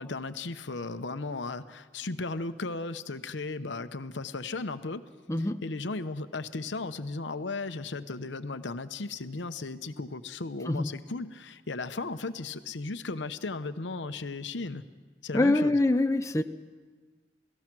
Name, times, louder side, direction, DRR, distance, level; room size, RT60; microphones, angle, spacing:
voice 1, 0.0-5.0 5.4-14.8 15.2-15.8, left 3 dB, 85° left, 10 dB, 0.9 m, -36 dB
voice 2, 5.3-5.6 10.7-10.9 15.3-16.4, left 2 dB, 15° left, 7 dB, 0.6 m, -24 dB
29.0 x 17.5 x 6.2 m, 1.4 s
head